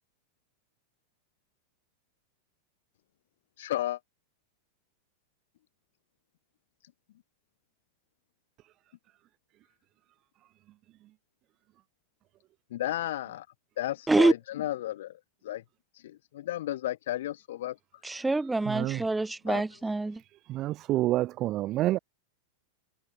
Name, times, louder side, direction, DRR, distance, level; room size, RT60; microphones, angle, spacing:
voice 1, 3.6-4.0 12.7-13.4 13.8-15.6 16.0-17.8 19.5-19.6, left 13 dB, 55° left, 1.8 m, -33 dB
voice 2, 18.0-20.2, right 2 dB, 5° right, 3.5 m, -26 dB
voice 3, 18.7-19.0 20.5-22.0, right 15 dB, 35° right, 0.6 m, -28 dB
figure-of-eight pair, 90°, 0 cm